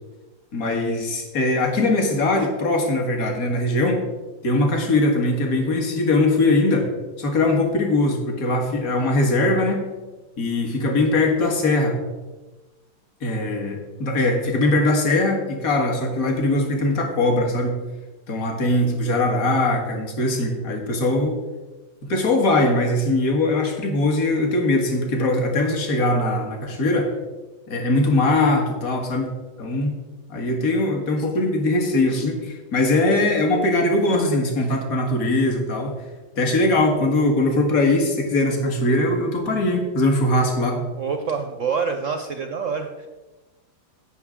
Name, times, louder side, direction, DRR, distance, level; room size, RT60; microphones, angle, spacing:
voice 1, 0.5-4.0 4.4-6.9 7.2-9.8 10.4-12.0 13.2-17.8 18.3-21.4 22.1-27.1 27.7-29.3 29.6-29.9 30.3-36.0 36.4-40.8, left 2 dB, 50° left, 2 dB, 1.9 m, -21 dB
voice 2, 40.9-43.1, right 5 dB, 65° right, 6 dB, 0.8 m, -26 dB
16.5 x 6.4 x 3.7 m, 1.2 s
omnidirectional pair, 2.1 m